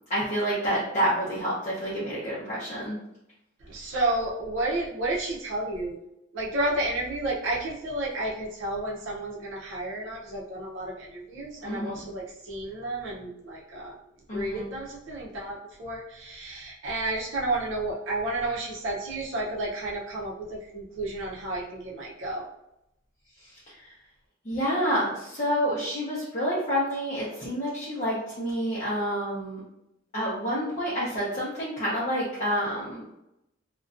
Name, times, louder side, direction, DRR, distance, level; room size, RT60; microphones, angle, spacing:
voice 1, 0.1-3.0 11.6-11.9 14.3-14.6 23.7-23.8 24.4-29.6 30.1-33.0, equal, 40° left, -8 dB, 0.6 m, -28 dB
voice 2, 3.6-6.0 6.3-14.0 14.3-22.5, right 2 dB, 75° right, -4 dB, 0.5 m, -31 dB
2.4 x 2.1 x 2.4 m, 0.84 s
head